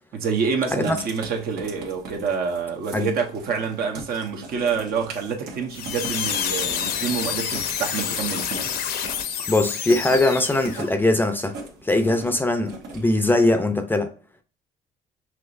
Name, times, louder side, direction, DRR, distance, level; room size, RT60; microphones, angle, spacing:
voice 1, 0.1-8.6, right 6 dB, 65° right, 1.0 m, -27 dB
Writing, 0.6-13.2, right 3 dB, 80° right, 1.4 m, -41 dB
sound 1, 5.7-10.9, left 8 dB, 65° left, 0.7 m, -28 dB
voice 2, 9.5-11.5 11.8-14.1, left 2 dB, 10° left, 0.5 m, -21 dB
5.8 x 2.9 x 2.5 m
cardioid pair, 110°, 17 cm